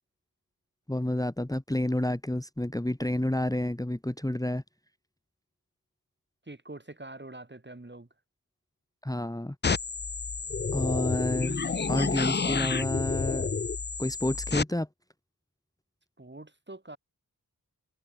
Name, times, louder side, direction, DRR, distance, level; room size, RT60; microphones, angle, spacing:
voice 1, 0.9-4.6 9.0-9.6 10.7-11.6 11.9-13.5 14.0-14.9, left 1 dB, 10° left, 1.8 m, -29 dB
voice 2, 6.5-8.1 16.2-17.0, right 2 dB, 30° right, 5.8 m, -44 dB
sound 1, 9.6-14.6, left 5 dB, 30° left, 0.5 m, -30 dB
wide cardioid pair, 65°, 38 cm